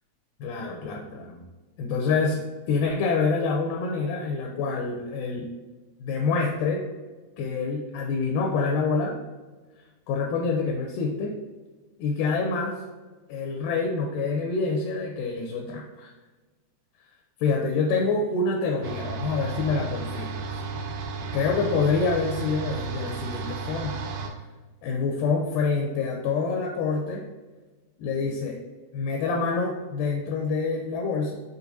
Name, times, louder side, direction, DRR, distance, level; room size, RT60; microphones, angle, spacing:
voice 1, 0.4-1.4 1.8-2.4 2.7-5.5 6.0-6.8 7.4-9.1 10.1-11.3 12.0-12.8 13.3-16.1 17.4-20.3 21.3-23.9 24.8-27.2 28.0-28.5 28.9-31.4, left 4 dB, 80° left, 0 dB, 2.0 m, -26 dB
sound 1, 18.8-24.3, right 4 dB, 85° right, 2.3 m, -33 dB
6.4 x 2.5 x 2.6 m, 1.3 s
omnidirectional pair, 4.0 m